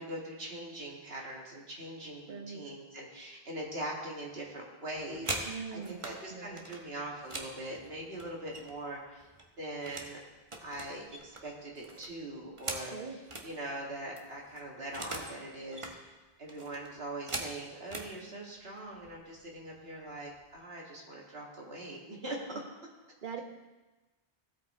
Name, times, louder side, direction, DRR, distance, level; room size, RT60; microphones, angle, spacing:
voice 1, 0.0-9.3 9.6-10.2 10.6-15.9 16.4-22.6, right 1 dB, 70° right, -2 dB, 2.1 m, -42 dB
voice 2, 2.3-2.6 5.5-6.0 6.3-6.7 12.9-13.2 23.2-23.4, right 6 dB, 55° right, 4 dB, 1.1 m, -41 dB
sound 1, 4.9-6.2 6.6-8.9 9.2-10.1 10.5-13.5 13.9-14.0 14.2-15.4 15.6-16.0 16.5-18.1 18.9-19.1 19.5-19.8 20.1-20.6, right 2 dB, 30° right, 1.0 m, -41 dB
15.5 x 5.4 x 4.2 m, 1.2 s
omnidirectional pair, 1.1 m